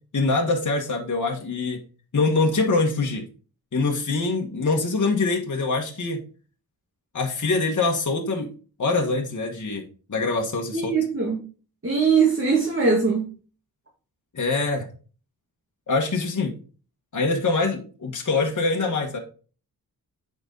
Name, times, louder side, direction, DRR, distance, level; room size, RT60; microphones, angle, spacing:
voice 1, 0.1-1.8 2.1-3.2 3.7-6.2 7.1-8.5 8.8-10.9 14.3-14.9 15.9-16.5 17.1-19.2, left 3 dB, 55° left, 1 dB, 1.5 m, -24 dB
voice 2, 10.7-11.4 11.8-13.3, right 5 dB, 35° right, -1 dB, 2.1 m, -21 dB
8.0 x 5.3 x 3.9 m, 0.37 s
wide cardioid pair, 80°, 37 cm